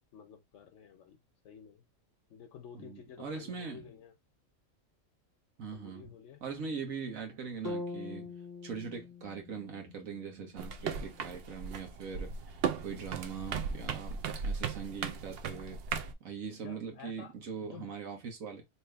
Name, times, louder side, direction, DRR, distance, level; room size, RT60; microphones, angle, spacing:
voice 1, 0.1-1.8 2.3-4.1 5.7-6.4 16.5-17.9, left 8 dB, 70° left, 0.9 m, -52 dB
voice 2, 2.7-3.8 5.6-6.2 6.4-8.3 8.6-15.8 16.2-18.7, right 5 dB, 85° right, 1.6 m, -41 dB
sound 1, 7.6-11.7, left 2 dB, 30° left, 0.4 m, -44 dB
sound 2, 10.6-16.1, right 6 dB, 60° right, 0.7 m, -37 dB
3.0 x 2.9 x 3.3 m
omnidirectional pair, 1.4 m